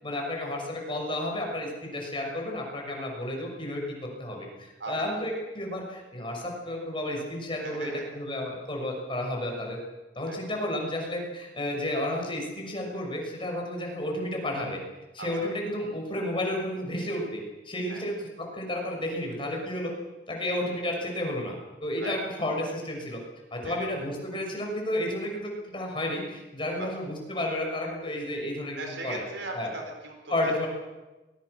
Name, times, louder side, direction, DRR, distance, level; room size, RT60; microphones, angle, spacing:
voice 1, 0.0-3.8 4.2-9.8 10.1-14.8 15.1-17.4 17.6-18.3 18.5-19.9 20.3-21.5 21.8-23.2 23.5-29.2 29.5-29.7 30.3-30.7, left 1 dB, 30° left, 0 dB, 6.3 m, -32 dB
voice 2, 4.8-5.2 7.6-8.1 10.3-10.4 15.2-15.5 17.9-18.0 22.0-22.2 23.6-23.9 26.8-26.9 28.8-30.7, right 3 dB, 75° right, 3 dB, 4.3 m, -39 dB
23.5 x 20.5 x 6.7 m, 1.1 s
head